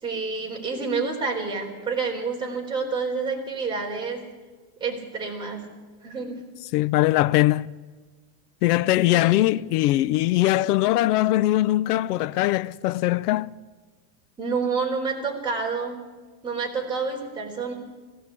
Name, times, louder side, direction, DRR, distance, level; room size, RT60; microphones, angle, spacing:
voice 1, 0.0-4.2 4.8-5.7 6.0-6.4 9.1-9.6 14.4-16.0 16.4-17.7, right 4 dB, 10° right, 4.1 m, -28 dB
voice 2, 6.7-7.7 8.6-13.5, left 16 dB, 80° left, 0.7 m, -21 dB
19.0 x 17.0 x 8.5 m
supercardioid pair, 170°, 46 cm